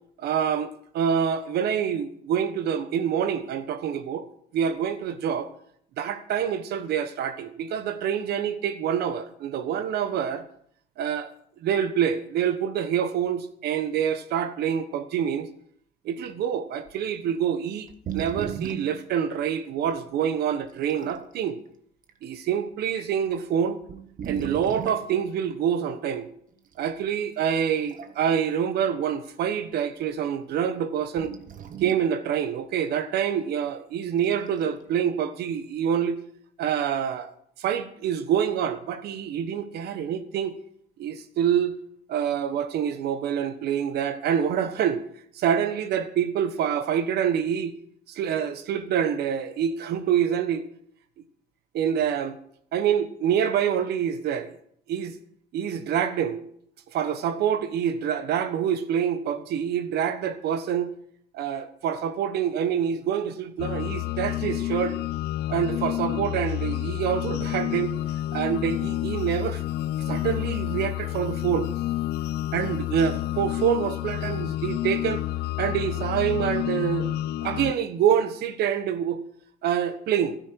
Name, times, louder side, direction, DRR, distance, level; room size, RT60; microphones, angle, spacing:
voice 1, 0.2-4.3 4.5-5.5 6.0-10.4 11.0-11.3 11.6-15.5 16.0-17.9 18.1-21.6 22.2-23.8 24.2-26.3 26.8-31.3 31.8-36.2 36.6-37.3 37.6-40.5 41.0-41.8 42.1-45.0 45.3-47.7 48.1-50.6 51.7-52.4 52.7-54.5 54.9-55.2 55.5-56.4 56.9-60.9 61.3-65.0 65.5-68.0 68.3-69.6 70.1-71.7 72.5-75.3 75.6-77.1 77.4-79.2 79.6-80.4, right 8 dB, 70° right, 1.3 m, -26 dB
sound 1, 16.9-17.0 17.9-19.0 19.9-20.0 20.7-21.3 22.0-22.2 23.1-23.2 23.8-25.1 26.7-26.9 27.7-28.4 28.7-28.8 31.2-32.1 34.2-34.7, right 9 dB, 50° right, 1.4 m, -36 dB
sound 2, 63.6-77.7, left 14 dB, 75° left, 0.5 m, -29 dB
15.0 x 13.0 x 4.6 m
cardioid pair, 110°, 17 cm